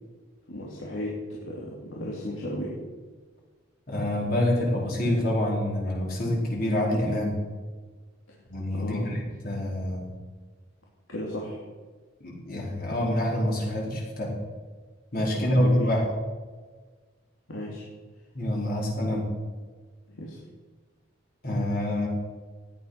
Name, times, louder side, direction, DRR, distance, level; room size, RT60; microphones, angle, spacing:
voice 1, 0.5-2.7 8.7-9.1 11.1-11.6 15.4-15.9 17.5-17.9 20.1-20.4, left 1 dB, 85° left, -4 dB, 2.8 m, -34 dB
voice 2, 3.9-7.3 8.5-10.1 12.2-14.3 15.1-16.0 18.3-19.3 21.4-22.1, left 1 dB, 45° left, -4 dB, 4.7 m, -26 dB
16.0 x 10.5 x 5.9 m, 1.4 s
head